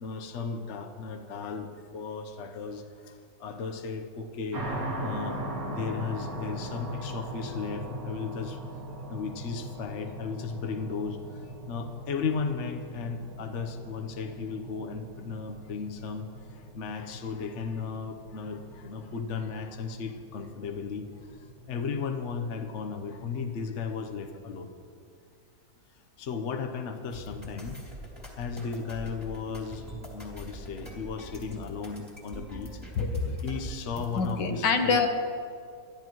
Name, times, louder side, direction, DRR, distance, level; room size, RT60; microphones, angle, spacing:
voice 1, 0.0-2.8 3.4-4.6 5.0-5.4 5.7-8.6 9.1-11.2 11.7-16.3 16.7-21.0 21.7-24.7 26.2-27.8 28.4-29.8 30.1-32.7 33.4-35.0, left 5 dB, 50° left, 5 dB, 1.0 m, -35 dB
sound 1, 4.5-24.3, right 1 dB, 75° right, 2.7 m, -40 dB
sound 2, 27.1-34.3, equal, 5° right, 2.8 m, -44 dB
voice 2, 33.0-33.4 34.2-35.1, left 4 dB, 90° left, 5 dB, 1.8 m, -26 dB
22.5 x 13.0 x 3.1 m, 2.2 s
omnidirectional pair, 1.9 m